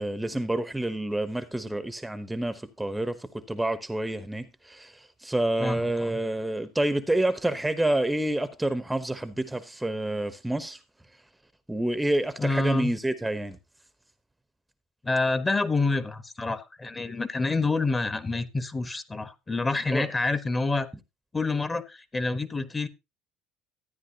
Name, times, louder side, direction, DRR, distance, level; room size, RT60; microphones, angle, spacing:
voice 1, 0.0-10.8 11.7-13.6 19.9-20.1, right 1 dB, 10° right, 0.9 m, -28 dB
voice 2, 5.6-6.2 12.4-12.9 15.0-20.9 21.3-22.9, left 3 dB, 20° left, 1.2 m, -28 dB
13.5 x 9.4 x 2.8 m
hypercardioid pair, 75°, 0 cm